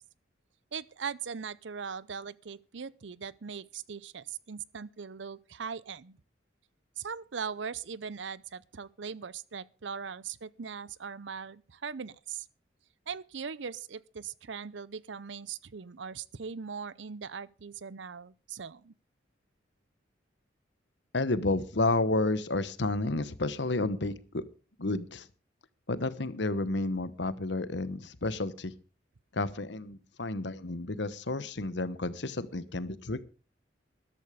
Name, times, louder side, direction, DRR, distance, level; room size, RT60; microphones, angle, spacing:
voice 1, 0.7-6.2 7.0-12.5 13.1-18.9, right 6 dB, 75° right, 0.6 m, -40 dB
voice 2, 21.1-24.4 24.8-25.3 25.9-28.7 29.3-33.2, left 2 dB, 70° left, 1.1 m, -31 dB
13.5 x 12.0 x 5.0 m
head